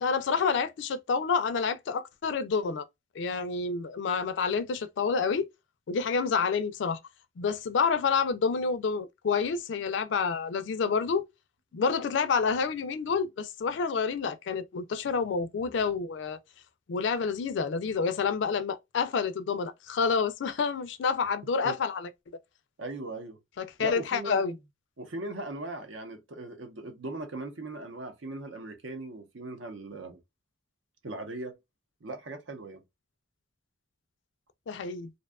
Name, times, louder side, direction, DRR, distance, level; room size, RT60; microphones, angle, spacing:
voice 1, 0.0-2.9 3.2-5.5 5.9-7.0 7.4-11.3 11.7-16.4 16.9-22.1 23.6-24.5 34.7-35.1, left 5 dB, 60° left, 0.3 m, -28 dB
voice 2, 22.8-23.4 23.8-24.6 25.0-30.2 31.0-31.5 32.0-32.8, right 2 dB, 70° right, 0.7 m, -39 dB
2.6 x 2.2 x 2.3 m
head